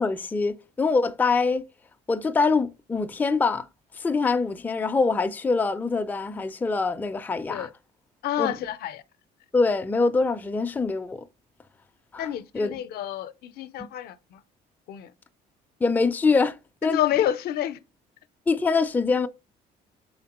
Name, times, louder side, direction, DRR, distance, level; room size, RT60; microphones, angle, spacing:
voice 1, 0.0-1.6 2.1-3.7 3.9-7.7 8.4-8.5 9.5-11.2 12.1-12.3 12.5-12.8 15.8-16.6 16.8-17.0 18.5-19.3, left 4 dB, 10° left, 0.3 m, -24 dB
voice 2, 8.2-9.0 12.2-14.4 14.9-15.1 16.8-17.8, left 11 dB, 70° left, 0.5 m, -28 dB
4.2 x 3.5 x 2.9 m
cardioid pair, 110°, 17 cm